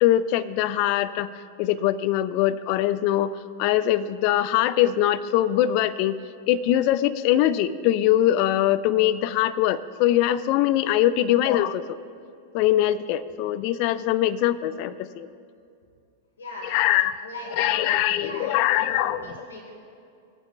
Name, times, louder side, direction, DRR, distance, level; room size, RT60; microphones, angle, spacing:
voice 1, 0.0-1.3 1.6-6.2 6.5-11.8 12.5-15.3 16.6-17.2 17.6-19.2, left 12 dB, 45° left, 13 dB, 0.4 m, -22 dB
voice 2, 16.4-16.8 17.2-19.7, left 2 dB, 70° left, 0 dB, 1.6 m, -38 dB
17.5 x 9.2 x 2.3 m, 2.4 s
figure-of-eight pair, 95°, 0 cm